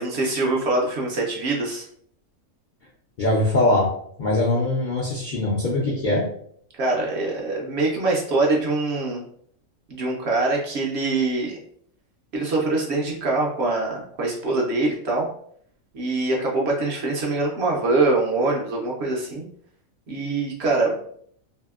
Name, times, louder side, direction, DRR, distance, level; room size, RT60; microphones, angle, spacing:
voice 1, 0.0-1.8 6.7-9.2 9.9-11.6 12.3-15.3 15.9-19.4 20.1-21.0, right 2 dB, 65° right, -2 dB, 0.7 m, -24 dB
voice 2, 3.2-3.9 4.2-6.2, left 2 dB, 65° left, -3 dB, 0.4 m, -21 dB
2.7 x 2.5 x 2.3 m, 0.64 s
omnidirectional pair, 1.4 m